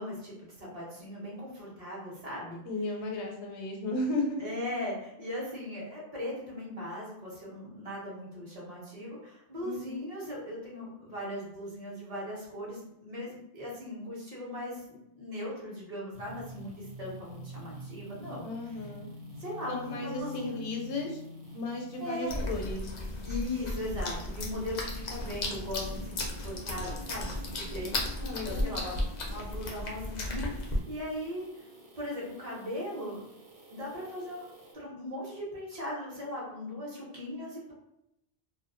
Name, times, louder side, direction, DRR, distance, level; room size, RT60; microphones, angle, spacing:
voice 1, 0.0-2.6 4.4-18.8 19.4-20.6 22.0-22.6 23.2-31.6 32.0-33.2 33.7-34.5 34.7-37.7, left 1 dB, 40° right, -5 dB, 0.7 m, -39 dB
voice 2, 2.6-4.4 9.6-10.0 18.4-19.1 19.7-21.2 21.5-22.8 28.2-28.9, left 2 dB, 90° left, 1 dB, 0.9 m, -35 dB
sound 1, 16.1-34.7, left 1 dB, 65° right, 0.9 m, -48 dB
sound 2, 22.3-30.8, left 1 dB, 55° left, 0.5 m, -35 dB
2.3 x 2.1 x 2.5 m, 0.83 s
omnidirectional pair, 1.1 m